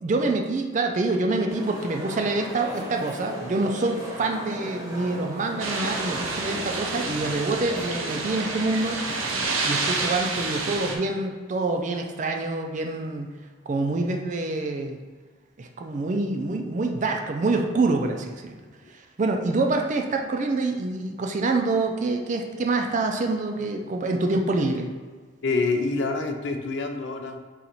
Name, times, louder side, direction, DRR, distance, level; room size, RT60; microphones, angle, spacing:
voice 1, 0.0-9.0 9.6-13.3 13.7-15.0 15.6-18.6 18.9-24.9, right 3 dB, 40° right, 3 dB, 0.4 m, -26 dB
sound 1, 1.5-9.5, equal, 15° right, 0.8 m, -37 dB
sound 2, 5.6-11.0, right 3 dB, 90° right, 0.6 m, -29 dB
voice 2, 25.4-27.4, left 3 dB, 60° left, 5 dB, 0.4 m, -26 dB
4.0 x 2.5 x 4.3 m, 1.5 s
head